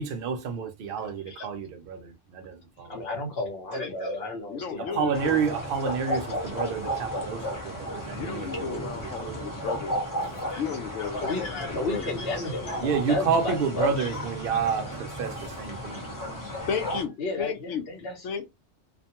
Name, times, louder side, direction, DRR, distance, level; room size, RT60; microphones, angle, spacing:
voice 1, 0.0-3.1 4.8-9.7 12.8-16.2, right 6 dB, 60° right, 0.7 m, -30 dB
voice 2, 2.9-5.0 10.3-10.6 11.0-14.1 17.2-18.1, left 2 dB, 60° left, 0.9 m, -32 dB
voice 3, 4.5-5.6 8.2-10.1 10.5-12.2 16.7-17.9 18.2-18.5, left 7 dB, 85° left, 1.0 m, -34 dB
sound 1, 5.1-17.0, equal, 20° left, 0.7 m, -34 dB
2.5 x 2.1 x 2.8 m
omnidirectional pair, 1.2 m